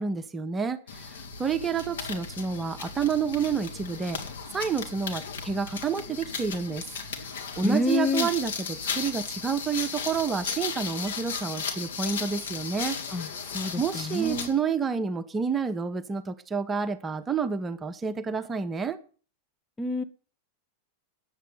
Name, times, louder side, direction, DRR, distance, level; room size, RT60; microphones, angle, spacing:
voice 1, 0.0-4.2 4.5-6.9 7.2-7.3 7.6-13.3 13.8-19.0, right 6 dB, 20° right, 1.1 m, -29 dB
sound 1, 0.9-14.6, left 6 dB, 60° left, 2.4 m, -36 dB
voice 2, 7.6-8.3 13.1-14.5 19.8-20.0, left 2 dB, 15° left, 1.1 m, -28 dB
9.8 x 8.1 x 9.3 m
figure-of-eight pair, 90°, 0 cm